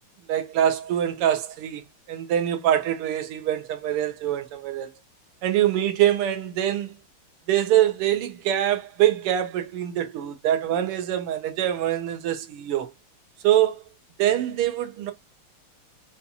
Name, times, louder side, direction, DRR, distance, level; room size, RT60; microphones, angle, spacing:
voice 1, 0.3-1.8 2.1-4.9 5.4-6.9 7.5-12.9 13.4-13.8 14.2-15.1, right 11 dB, 85° right, 1.7 m, -24 dB
5.5 x 2.4 x 2.7 m
omnidirectional pair, 2.4 m